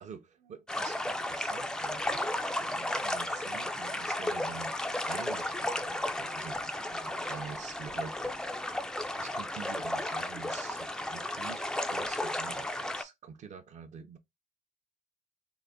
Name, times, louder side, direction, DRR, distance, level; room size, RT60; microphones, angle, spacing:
voice 1, 0.0-2.2 2.5-4.7 5.1-8.9 9.2-14.2, right 6 dB, 45° right, 0.6 m, -47 dB
sound 1, 0.7-13.0, left 1 dB, 5° left, 0.3 m, -34 dB
3.8 x 2.1 x 3.5 m
cardioid pair, 110°, 17 cm